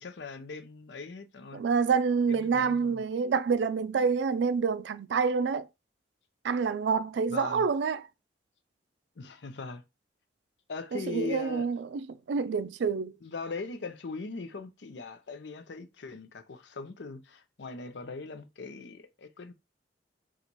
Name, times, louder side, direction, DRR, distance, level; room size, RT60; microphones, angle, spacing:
voice 1, 0.0-1.6 2.3-3.0 7.3-7.7 9.2-9.8 10.7-11.7 13.2-19.5, left 3 dB, 80° left, 0.6 m, -40 dB
voice 2, 1.5-5.7 6.4-8.0 10.9-13.1, right 5 dB, 80° right, 0.4 m, -27 dB
4.0 x 2.4 x 4.5 m
head